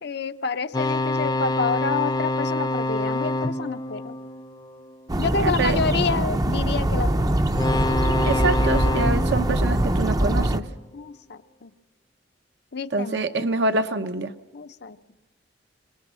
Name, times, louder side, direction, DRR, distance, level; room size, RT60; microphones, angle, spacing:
voice 1, 0.0-4.1 5.2-7.5 10.9-11.7 12.7-13.5 14.5-15.0, left 5 dB, 65° left, 10 dB, 0.7 m, -29 dB
sound 1, 0.7-5.1 7.5-10.8, left 2 dB, 25° left, 0.6 m, -27 dB
sound 2, 5.1-10.6, right 1 dB, 20° right, 0.6 m, -23 dB
voice 2, 5.4-5.8 8.2-10.6 12.9-14.3, right 2 dB, 65° right, 8 dB, 1.0 m, -25 dB
24.5 x 19.5 x 6.2 m, 1.2 s
head